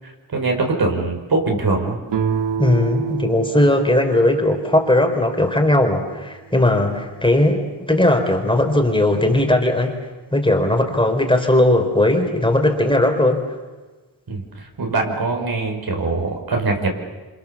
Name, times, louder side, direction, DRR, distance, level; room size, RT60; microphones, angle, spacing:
voice 1, 0.0-2.0 2.6-2.7 14.3-16.9, right 3 dB, 60° right, 2 dB, 5.6 m, -22 dB
sound 1, 2.1-5.7, right 8 dB, 90° right, 2.4 m, -28 dB
voice 2, 2.6-9.9 10.3-13.4, left 1 dB, 10° left, 3 dB, 4.1 m, -18 dB
27.5 x 27.0 x 7.3 m, 1.2 s
wide cardioid pair, 100°, 42 cm